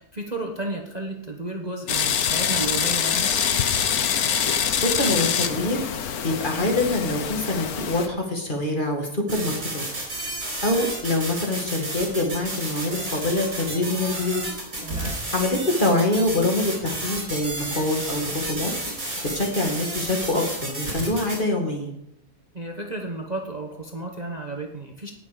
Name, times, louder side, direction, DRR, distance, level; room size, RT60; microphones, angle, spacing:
voice 1, 0.0-3.3 14.8-15.2 22.5-25.1, right 2 dB, 30° right, 2 dB, 1.2 m, -33 dB
sound 1, 1.9-8.1, left 8 dB, 75° left, 1.4 m, -24 dB
voice 2, 4.5-5.8 6.2-9.9 10.6-14.4 15.3-18.7 19.3-21.9, left 2 dB, 30° left, 1 dB, 2.1 m, -25 dB
sound 2, 9.3-21.4, right 1 dB, 60° right, 5.0 m, -32 dB
18.0 x 6.9 x 5.1 m, 0.77 s
omnidirectional pair, 1.6 m